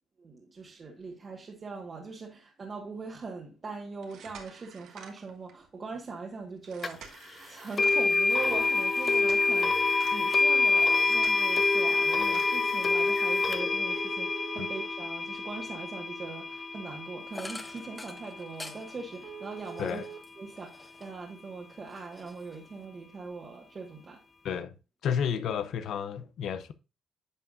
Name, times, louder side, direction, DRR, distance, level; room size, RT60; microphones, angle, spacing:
voice 1, 0.2-20.0 20.4-24.2, right 4 dB, 40° right, 1.5 m, -41 dB
sound 1, 3.9-5.7 6.6-8.2 9.0-10.2 10.8-12.7 13.9-15.8 16.2-16.3 16.8-16.9 17.4-17.5 17.8-17.9 18.3-18.4 18.7-18.8 19.2-20.2 21.3-21.4, right 7 dB, 80° right, 1.3 m, -47 dB
sound 2, 6.8-6.9 7.8-18.8, left 3 dB, 35° left, 0.6 m, -27 dB
sound 3, 17.3-21.3 21.7-22.9, left 2 dB, 20° left, 1.1 m, -47 dB
voice 2, 24.4-24.8 25.0-26.7, left 8 dB, 75° left, 0.6 m, -31 dB
10.0 x 5.8 x 2.5 m
cardioid pair, 90°, 0 cm